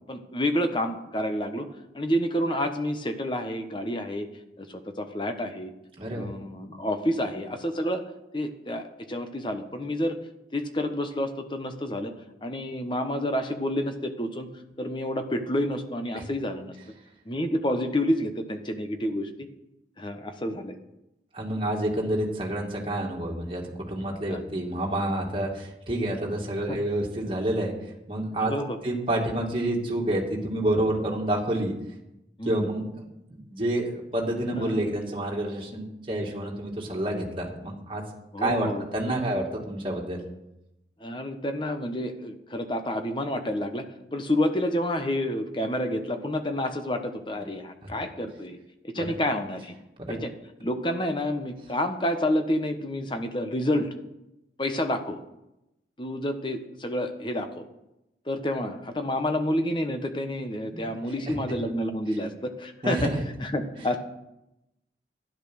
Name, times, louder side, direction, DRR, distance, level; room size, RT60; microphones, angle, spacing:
voice 1, 0.1-1.7 1.9-4.3 4.6-5.7 6.1-8.0 8.3-10.2 10.5-12.1 12.4-14.5 14.8-16.8 17.2-19.5 20.0-20.8 24.3-24.4 26.7-26.8 28.4-28.8 32.4-32.7 34.5-34.9 38.3-38.8 41.0-48.6 48.8-49.7 50.1-50.3 50.6-53.9 54.6-55.2 56.0-57.7 58.3-63.1 63.4-64.0, left 1 dB, 25° left, 6 dB, 1.1 m, -29 dB
voice 2, 6.0-6.3 16.1-16.2 21.3-28.5 28.8-31.7 32.5-38.0 38.4-40.2 47.8-47.9 49.0-49.1 50.0-50.2 60.7-60.8 62.8-63.2, right 1 dB, 30° right, -1 dB, 2.3 m, -28 dB
12.0 x 10.5 x 6.3 m, 0.89 s
head